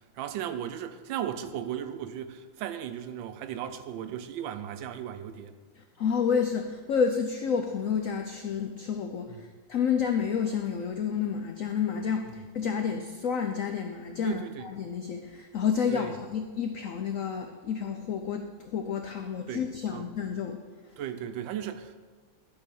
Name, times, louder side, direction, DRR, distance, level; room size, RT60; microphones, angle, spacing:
voice 1, 0.1-5.6 9.3-9.5 14.2-14.7 15.9-16.2 19.5-19.6 19.9-20.0 21.0-22.0, right 10 dB, 90° right, 10 dB, 1.4 m, -36 dB
voice 2, 6.0-20.6, left 7 dB, 80° left, 5 dB, 0.7 m, -30 dB
12.0 x 4.2 x 6.1 m, 1.4 s
omnidirectional pair, 2.1 m